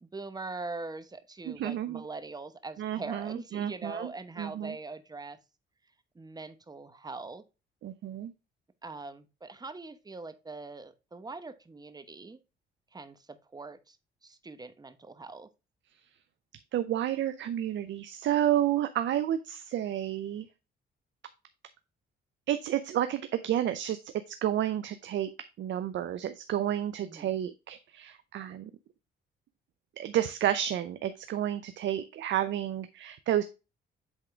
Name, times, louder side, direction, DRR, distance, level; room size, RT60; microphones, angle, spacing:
voice 1, 0.0-5.4 6.1-7.4 8.8-12.4 12.9-14.0 14.2-15.5 27.0-27.3, right 3 dB, 20° right, 11 dB, 0.9 m, -42 dB
voice 2, 1.5-2.0 2.8-4.1 4.4-4.7 7.8-8.3 16.7-20.5 22.5-24.1 24.4-25.3 25.6-28.7 30.0-33.4, right 11 dB, 70° right, 10 dB, 0.6 m, -30 dB
8.0 x 3.7 x 3.3 m, 0.28 s
cardioid pair, 90°, 20 cm